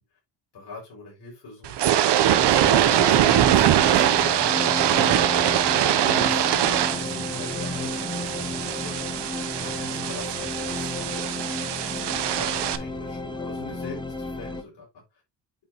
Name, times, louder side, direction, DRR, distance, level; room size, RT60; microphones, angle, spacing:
voice 1, 0.5-1.9 2.4-5.4 6.0-9.0 9.5-11.4 11.9-15.0, left 3 dB, 60° left, 4.6 m, -43 dB
sound 1, 1.6-12.8, right 11 dB, 65° right, 0.8 m, -22 dB
sound 2, 2.3-14.6, left 2 dB, 10° left, 0.9 m, -33 dB
8.7 x 4.9 x 2.9 m
wide cardioid pair, 165°, 44 cm